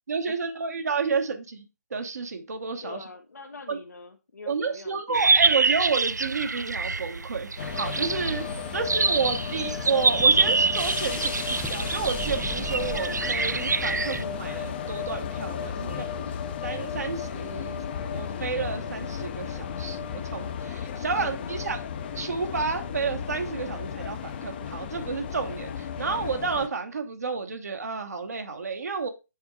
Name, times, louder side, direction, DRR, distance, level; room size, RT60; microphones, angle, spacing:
voice 1, 0.1-3.0 3.7-3.8 4.5-8.5 8.7-16.1 16.6-17.8 18.1-21.8 22.1-29.1, right 5 dB, 65° right, 6 dB, 1.1 m, -31 dB
voice 2, 2.8-5.4 8.3-8.9 15.6-16.4 21.1-21.6, left 3 dB, 75° left, 2 dB, 1.0 m, -44 dB
sound 1, 5.1-14.2, right 4 dB, 90° right, 0.4 m, -25 dB
sound 2, 7.6-26.7, left 7 dB, 35° left, 0.7 m, -34 dB
sound 3, 10.0-14.6 14.8-14.9, right 4 dB, 5° right, 0.4 m, -41 dB
7.2 x 4.4 x 4.6 m, 0.27 s
figure-of-eight pair, 140°, 9 cm